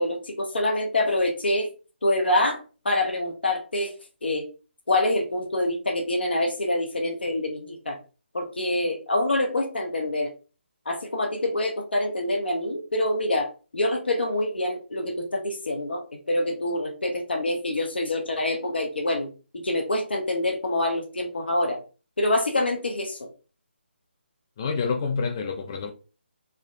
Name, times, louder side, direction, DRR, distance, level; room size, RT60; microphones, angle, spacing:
voice 1, 0.0-1.7 2.0-2.6 2.8-3.9 4.2-4.4 4.9-8.0 8.3-10.3 10.9-19.3 19.5-21.8 22.2-23.3, left 1 dB, 60° left, 0.8 m, -26 dB
voice 2, 24.6-25.9, left 5 dB, 20° left, 0.3 m, -27 dB
3.3 x 2.8 x 2.4 m
figure-of-eight pair, 145°, 6 cm